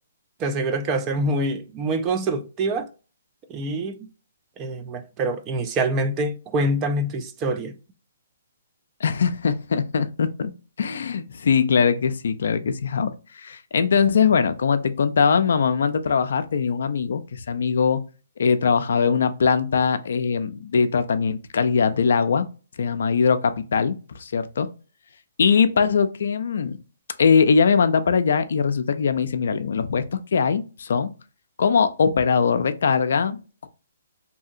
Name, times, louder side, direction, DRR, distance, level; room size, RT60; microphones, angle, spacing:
voice 1, 0.4-2.9 3.5-4.0 4.6-7.7, right 2 dB, 25° right, 0.3 m, -25 dB
voice 2, 9.0-10.5 10.8-18.0 18.4-22.5 22.8-24.7 25.4-26.8 27.2-30.0 30.3-31.1 31.6-33.7, left 6 dB, 70° left, 0.3 m, -21 dB
2.7 x 2.7 x 2.4 m
hypercardioid pair, 150°, 0 cm